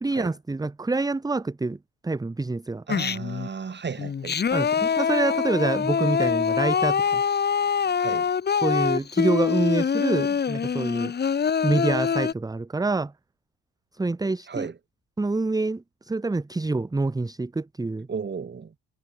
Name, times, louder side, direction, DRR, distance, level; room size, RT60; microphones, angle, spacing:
voice 1, 0.0-1.8 2.0-2.8 4.5-7.2 8.6-11.1 11.6-13.1 13.9-14.7 15.2-18.1, right 3 dB, 10° right, 0.7 m, -26 dB
Singing, 2.9-3.5 4.0-12.3, left 7 dB, 25° left, 0.7 m, -24 dB
voice 2, 2.9-4.4 8.0-8.3 14.5-14.8 18.1-18.7, right 6 dB, 25° right, 1.4 m, -34 dB
cardioid pair, 90°, 43 cm